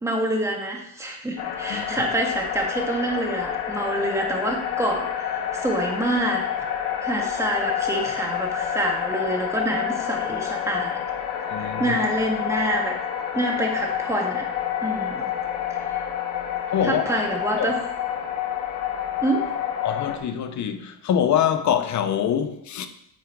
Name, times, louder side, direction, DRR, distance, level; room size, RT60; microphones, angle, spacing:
voice 1, 0.0-6.5 7.0-11.0 11.4-12.9 13.3-14.4 14.8-15.3 15.9-16.0 16.8-17.8 19.2-19.4, right 1 dB, 5° right, 1.7 m, -26 dB
sound 1, 1.4-20.2, left 9 dB, 90° left, 1.2 m, -28 dB
voice 2, 11.5-12.0 16.7-17.0 17.6-17.7 19.8-22.9, left 9 dB, 45° left, 0.9 m, -24 dB
8.9 x 4.7 x 4.7 m
cardioid pair, 120°, 41 cm